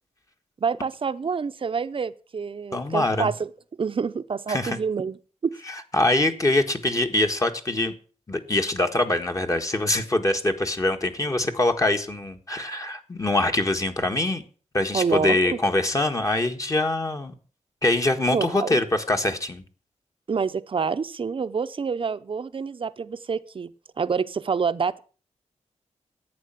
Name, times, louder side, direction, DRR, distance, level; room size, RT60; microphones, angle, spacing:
voice 1, 0.6-3.5 3.8-5.2 5.4-5.5 14.9-15.6 18.3-18.8 20.3-23.7 24.0-25.0, right 5 dB, 45° right, 13 dB, 0.7 m, -27 dB
voice 2, 2.7-3.3 4.5-4.8 5.7-7.9 8.3-14.4 14.7-17.3 17.8-19.6, left 2 dB, 25° left, 5 dB, 1.6 m, -24 dB
11.0 x 8.9 x 7.4 m, 0.40 s
wide cardioid pair, 125°, 12 cm